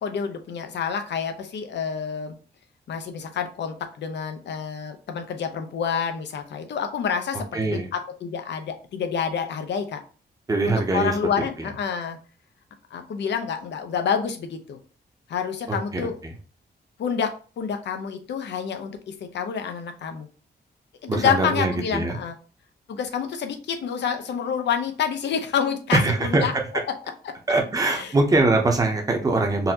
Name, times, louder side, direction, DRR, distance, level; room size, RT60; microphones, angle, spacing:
voice 1, 0.0-2.3 2.9-10.0 10.6-12.2 12.9-14.8 15.3-16.2 17.0-17.3 17.6-20.3 21.0-22.4 22.9-26.5 27.9-28.1, left 7 dB, 85° left, 6 dB, 0.7 m, -28 dB
voice 2, 7.5-7.9 10.5-11.1 15.7-16.3 21.1-22.2 25.9-26.5 27.5-29.7, right 2 dB, 20° right, 2 dB, 0.7 m, -22 dB
4.0 x 2.6 x 2.8 m, 0.38 s
wide cardioid pair, 175°, 18 cm